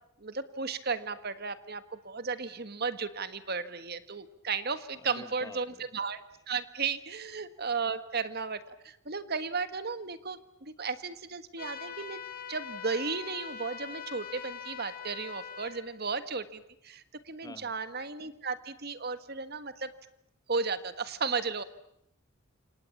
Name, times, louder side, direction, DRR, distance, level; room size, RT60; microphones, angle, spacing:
voice 1, 0.2-12.2 12.5-19.9 20.5-21.6, right 5 dB, 50° right, 12 dB, 1.5 m, -35 dB
voice 2, 5.0-5.8 17.4-17.7, left 2 dB, 20° left, 13 dB, 1.1 m, -48 dB
sound 1, 11.6-15.8, left 8 dB, 45° left, 4.0 m, -42 dB
29.5 x 27.0 x 7.2 m, 0.78 s
head